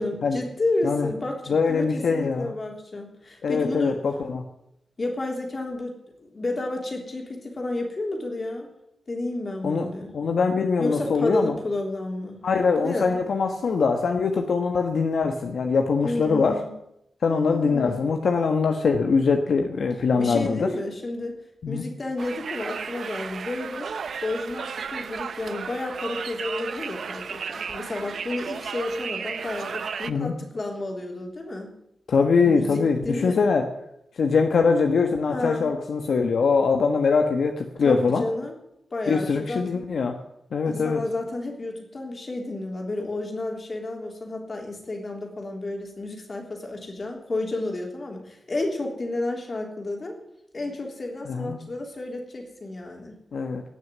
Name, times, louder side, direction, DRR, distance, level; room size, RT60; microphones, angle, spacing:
voice 1, 0.0-4.0 5.0-8.7 9.1-10.1 10.8-12.4 12.8-13.2 16.0-16.7 17.3-18.1 20.2-21.4 21.7-23.9 24.2-31.7 32.4-33.4 35.3-35.7 37.8-38.5 38.9-39.6 40.7-50.2 50.5-53.1, left 2 dB, 35° left, 1 dB, 3.5 m, -31 dB
voice 2, 1.5-2.5 3.4-4.4 9.6-9.9 10.1-11.5 12.4-16.5 17.2-20.7 21.6-21.8 30.1-30.3 32.1-33.6 34.2-38.2 39.1-40.1 40.5-41.0 51.2-51.6 53.3-53.6, left 5 dB, 70° left, 4 dB, 1.4 m, -22 dB
Conversation, 22.2-30.1, right 6 dB, 65° right, 0.7 m, -34 dB
18.5 x 6.6 x 9.7 m, 0.80 s
wide cardioid pair, 140°, 0 cm